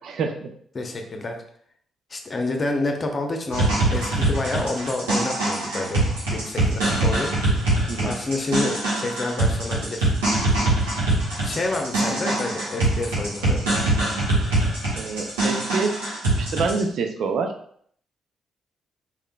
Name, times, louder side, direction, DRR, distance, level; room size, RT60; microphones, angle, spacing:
voice 1, 0.0-0.5 7.9-8.2 15.0-16.0 16.4-17.5, right 4 dB, 60° right, 5 dB, 0.5 m, -26 dB
voice 2, 0.7-1.4 2.1-6.0 6.3-7.3 8.0-10.1 11.4-13.6, left 2 dB, 40° left, 3 dB, 0.9 m, -28 dB
sound 1, 3.5-16.8, right 2 dB, 80° right, 1.4 m, -23 dB
4.8 x 3.6 x 2.3 m, 0.62 s
hypercardioid pair, 40°, 0 cm